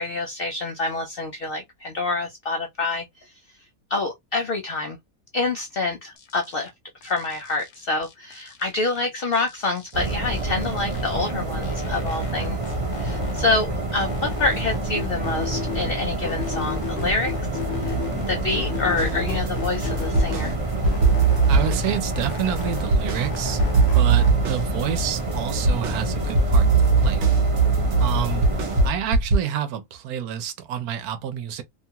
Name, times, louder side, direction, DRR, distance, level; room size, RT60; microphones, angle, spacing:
voice 1, 0.0-3.3 3.9-5.0 5.3-6.7 7.0-17.5 17.8-20.5, left 3 dB, 80° left, 0.5 m, -27 dB
sound 1, 6.2-6.7 7.0-9.0 9.3-11.3 11.6-13.6 13.9-15.9 16.2-18.3 18.5-20.6 20.8-22.9 23.2-24.3, left 10 dB, 60° left, 0.8 m, -36 dB
sound 2, 9.9-28.9, right 2 dB, 35° right, 0.6 m, -28 dB
sound 3, 19.0-20.5 20.8-23.2 23.6-29.4, right 4 dB, 60° right, 0.9 m, -20 dB
voice 2, 21.5-27.2 28.0-28.5 28.8-31.6, right 10 dB, 80° right, 1.1 m, -29 dB
2.8 x 2.3 x 2.8 m
omnidirectional pair, 1.6 m